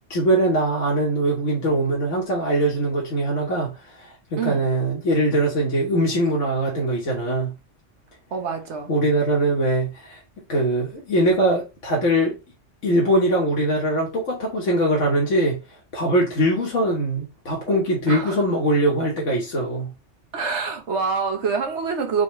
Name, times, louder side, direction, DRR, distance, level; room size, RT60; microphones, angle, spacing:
voice 1, 0.1-3.7 4.0-7.5 8.9-10.2 10.5-12.4 12.8-15.6 15.9-19.9, right 1 dB, 90° left, 1.6 m, -22 dB
voice 2, 8.3-8.9 18.1-18.4 20.3-22.2, right 5 dB, 70° right, 1.3 m, -26 dB
4.2 x 4.1 x 3.1 m
omnidirectional pair, 1.2 m